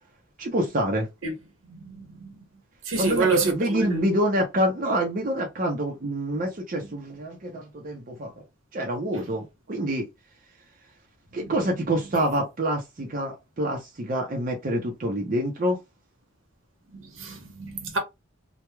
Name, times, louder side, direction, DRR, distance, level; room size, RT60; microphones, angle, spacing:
voice 1, 0.4-1.1 3.0-8.3 8.7-10.0 11.3-15.8, right 1 dB, 40° right, 0.6 m, -26 dB
voice 2, 1.7-2.3 2.9-4.0 16.9-18.0, right 3 dB, 75° right, 1.0 m, -27 dB
3.0 x 2.2 x 2.2 m
head